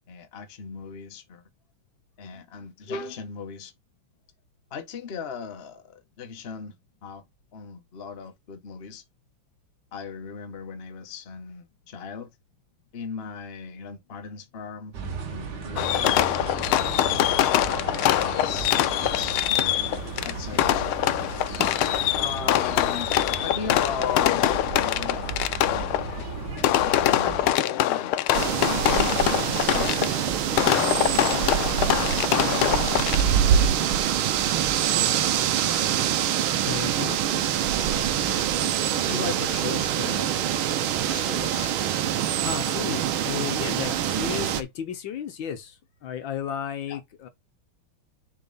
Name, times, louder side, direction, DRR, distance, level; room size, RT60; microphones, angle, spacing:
voice 1, 0.1-1.4 2.2-3.7 4.7-6.8 7.0-7.2 7.5-9.0 9.9-12.3 12.9-15.0 15.3-16.3 16.7-17.5 18.2-18.7 19.0-19.8 20.2-21.0 22.2-26.3 26.7-28.2 29.4-30.6 33.3-33.7 39.1-40.5 41.1-41.7 46.9-47.0, left 6 dB, 35° left, 1.1 m, -38 dB
sound 1, 14.9-27.5, right 4 dB, 55° right, 1.9 m, -35 dB
Fireworks, 15.8-33.5, left 13 dB, 90° left, 1.5 m, -24 dB
sound 2, 28.3-44.6, right 9 dB, 75° right, 1.6 m, -25 dB
voice 2, 36.6-37.2 42.4-47.3, left 9 dB, 70° left, 1.5 m, -34 dB
6.9 x 4.3 x 4.0 m
omnidirectional pair, 2.3 m